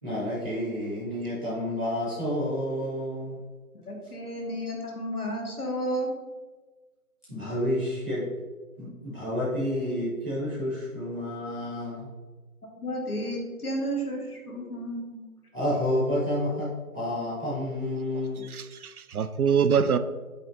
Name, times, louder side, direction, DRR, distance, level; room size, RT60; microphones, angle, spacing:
voice 1, 0.0-3.4 7.3-8.2 8.8-12.1 15.5-18.4, left 1 dB, 5° left, 1.3 m, -30 dB
voice 2, 3.9-6.2 12.7-15.2, equal, 80° left, 2.3 m, -32 dB
voice 3, 18.1-20.0, right 7 dB, 75° right, 0.6 m, -25 dB
7.8 x 4.0 x 4.5 m
hypercardioid pair, 180°, 44 cm